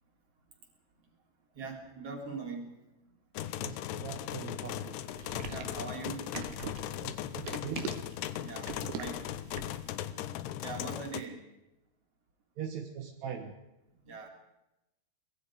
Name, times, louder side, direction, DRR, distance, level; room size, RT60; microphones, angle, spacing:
voice 1, 1.6-2.7 5.4-6.3 8.4-8.7 9.0-9.2 10.6-11.4 14.0-14.3, right 4 dB, 35° right, 2 dB, 4.4 m, -41 dB
sound 1, 3.4-11.2, left 12 dB, 80° left, 2.9 m, -38 dB
voice 2, 3.6-5.0 7.0-7.9 12.6-13.5, right 8 dB, 55° right, 2 dB, 2.3 m, -41 dB
sound 2, 5.2-9.9, right 7 dB, 80° right, 3.6 m, -41 dB
24.5 x 22.0 x 5.0 m, 0.91 s
omnidirectional pair, 4.8 m